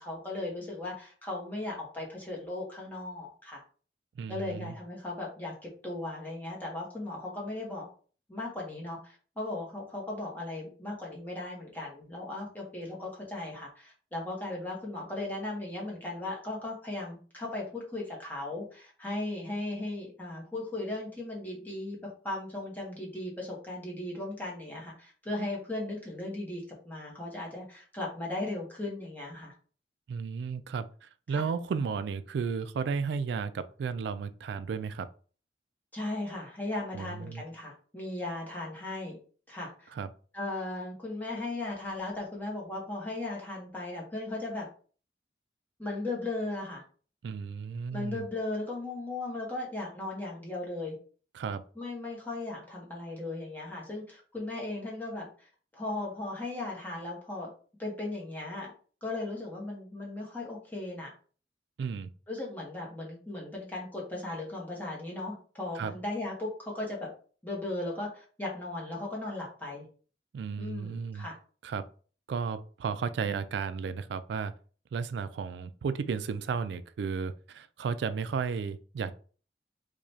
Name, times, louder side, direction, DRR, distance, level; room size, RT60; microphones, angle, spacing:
voice 1, 0.0-3.6 4.3-7.9 8.3-29.5 31.3-31.5 35.9-39.2 39.5-39.9 40.3-44.7 45.8-46.8 47.9-50.9 51.8-57.5 57.8-58.7 59.0-61.1 62.3-67.1 67.4-69.9 70.6-71.3, left 2 dB, 10° left, 0.9 m, -37 dB
voice 2, 4.2-4.7 30.1-35.1 36.9-37.4 39.9-40.1 47.2-48.3 51.3-51.6 61.8-62.1 65.8-65.9 70.3-71.3 71.6-71.8 72.3-74.5 74.9-79.1, right 5 dB, 75° right, 0.3 m, -33 dB
4.7 x 2.2 x 2.7 m
head